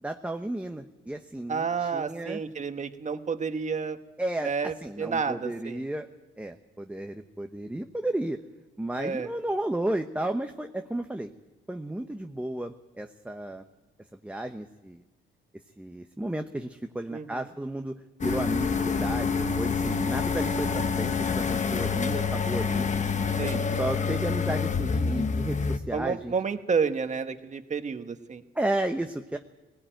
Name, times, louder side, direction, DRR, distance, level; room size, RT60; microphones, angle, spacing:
voice 1, 0.0-2.4 4.2-6.1 6.4-8.4 8.8-11.3 11.7-13.6 14.2-15.0 15.8-17.9 18.2-22.9 23.4-26.3 28.5-29.4, right 1 dB, 5° right, 5 dB, 1.1 m, -33 dB
voice 2, 1.5-4.0 4.4-5.9 9.0-9.3 17.1-17.4 23.4-23.7 25.9-28.4, right 5 dB, 35° right, 8 dB, 1.5 m, -30 dB
sound 1, 18.2-25.8, left 5 dB, 35° left, 1.2 m, -27 dB
19.0 x 18.5 x 9.2 m, 1.1 s
cardioid pair, 90°, 20 cm